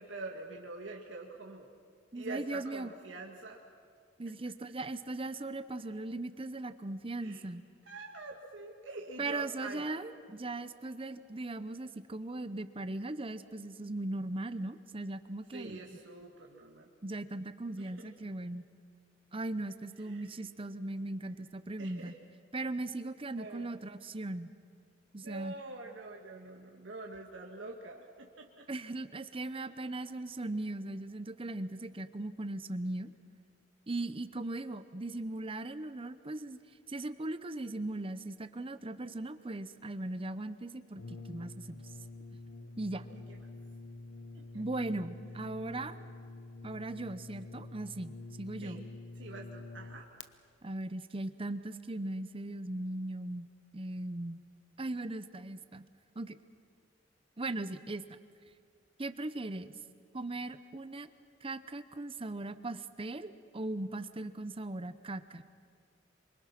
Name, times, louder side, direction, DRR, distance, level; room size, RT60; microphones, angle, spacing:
voice 1, 0.0-1.7 2.1-3.6 7.2-7.4 7.9-9.9 15.5-16.9 17.8-18.1 20.0-20.4 21.8-22.1 23.4-23.7 25.2-28.7 44.3-44.6 46.0-46.1 48.6-48.8 49.2-50.1, right 2 dB, 75° right, 0 dB, 1.8 m, -45 dB
voice 2, 2.1-2.9 4.2-7.7 9.2-16.0 17.0-18.6 19.3-22.2 22.5-24.5 25.1-25.5 28.7-33.1 33.9-36.6 36.9-41.8 42.8-43.1 44.5-46.0 46.6-48.8 50.6-54.4 54.8-55.8 56.2-56.4 57.4-58.2 59.0-59.7 60.1-61.1 61.4-65.4, right 2 dB, 30° right, 12 dB, 0.8 m, -38 dB
Brass instrument, 40.9-50.3, left 2 dB, 80° left, 0.9 m, -47 dB
26.5 x 24.0 x 6.0 m, 2.2 s
head